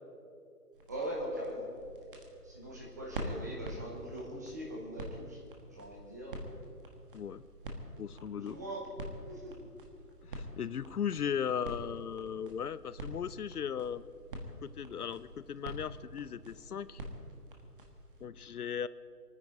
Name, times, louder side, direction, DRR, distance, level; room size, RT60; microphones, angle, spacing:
sound 1, 0.7-18.3, right 1 dB, 35° right, 1.6 m, -46 dB
voice 1, 0.9-1.7 2.4-5.4 5.7-6.4 8.2-8.8 9.3-9.5, right 1 dB, 10° right, -3 dB, 1.0 m, -41 dB
voice 2, 8.0-8.6 10.3-14.0 14.6-17.0 18.2-18.9, left 8 dB, 70° left, 17 dB, 0.6 m, -37 dB
24.0 x 9.8 x 5.1 m, 2.4 s
hypercardioid pair, 165°, 47 cm